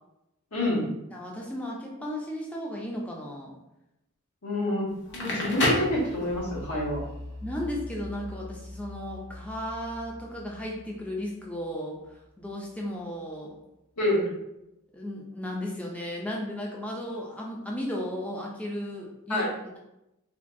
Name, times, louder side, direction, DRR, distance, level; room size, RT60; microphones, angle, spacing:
voice 1, 0.5-0.8 4.4-7.0 14.0-14.2 19.3-19.5, left 1 dB, 85° left, -5 dB, 1.1 m, -27 dB
voice 2, 1.1-3.5 7.4-13.5 14.9-19.8, equal, 5° left, -2 dB, 0.3 m, -35 dB
Crackle, 4.9-6.7, left 1 dB, 55° left, 0.7 m, -28 dB
sound 1, 5.3-13.0, left 1 dB, 45° right, 0.5 m, -44 dB
3.4 x 2.3 x 2.5 m, 0.89 s
head